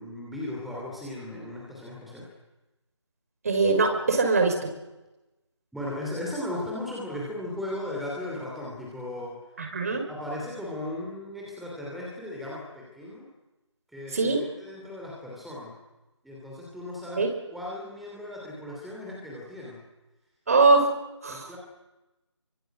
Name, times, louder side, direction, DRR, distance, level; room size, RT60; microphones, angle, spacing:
voice 1, 0.0-2.3 5.7-9.5 9.9-13.3 13.9-15.7 16.2-17.3 17.5-19.8 21.3-21.6, left 1 dB, ahead, -4 dB, 3.0 m, -36 dB
voice 2, 3.4-4.7 9.6-10.0 14.1-14.4 17.2-17.3 20.5-20.9 21.2-21.5, right 3 dB, 30° right, 5 dB, 5.3 m, -22 dB
27.5 x 25.0 x 7.9 m, 1.0 s
figure-of-eight pair, 160°, 15 cm